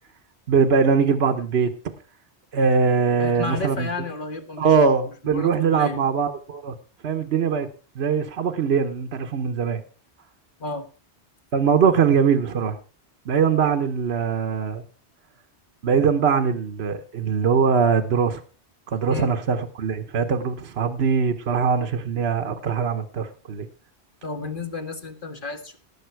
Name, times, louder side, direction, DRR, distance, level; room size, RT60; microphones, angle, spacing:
voice 1, 0.5-1.7 2.5-3.9 4.6-6.7 7.0-7.7 7.9-9.8 11.5-12.8 13.3-14.8 15.8-18.4 18.9-23.7, right 6 dB, 70° right, 6 dB, 1.2 m, -21 dB
voice 2, 3.2-4.8 5.2-6.1 10.6-10.9 19.1-19.3 24.2-25.8, left 3 dB, 50° left, 5 dB, 1.9 m, -32 dB
18.0 x 7.2 x 4.6 m, 0.38 s
omnidirectional pair, 1.1 m